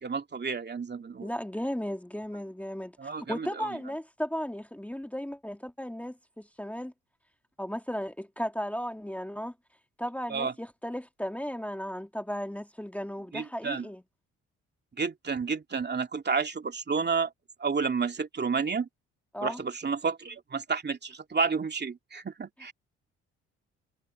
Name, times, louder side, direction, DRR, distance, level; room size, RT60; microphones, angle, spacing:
voice 1, 0.0-1.3 3.0-3.7 10.3-10.5 13.3-13.9 15.0-17.3 17.6-18.9 19.4-22.7, right 5 dB, 35° right, 2.8 m, -30 dB
voice 2, 1.2-6.9 7.6-9.5 10.0-14.0 19.3-19.6, equal, 5° left, 2.1 m, -35 dB
supercardioid pair, 60°, 29 cm